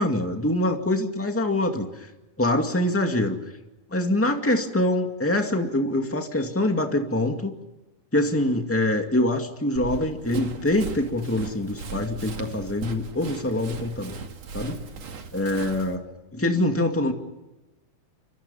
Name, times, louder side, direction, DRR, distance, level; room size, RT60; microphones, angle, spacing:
voice 1, 0.0-2.1 2.4-3.4 3.9-7.6 8.1-14.2 14.5-14.8 15.3-16.0 16.3-17.1, left 1 dB, 15° left, 4 dB, 0.4 m, -24 dB
Run, 9.8-16.0, right 5 dB, 45° right, 2.9 m, -38 dB
30.0 x 26.0 x 5.6 m, 1.0 s
omnidirectional pair, 4.6 m